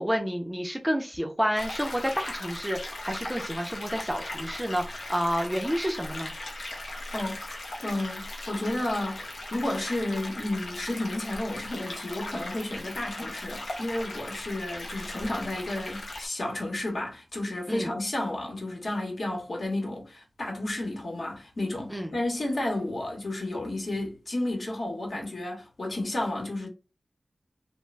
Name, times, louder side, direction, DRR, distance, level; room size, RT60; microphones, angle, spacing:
voice 1, 0.0-6.3 17.7-17.9 21.9-22.1, equal, 5° right, 0.5 m, -29 dB
sound 1, 1.5-16.3, left 1 dB, 85° left, 0.8 m, -38 dB
voice 2, 7.1-7.4 7.8-26.7, left 1 dB, 55° left, 1.0 m, -32 dB
2.4 x 2.2 x 3.1 m
wide cardioid pair, 95°, 0 cm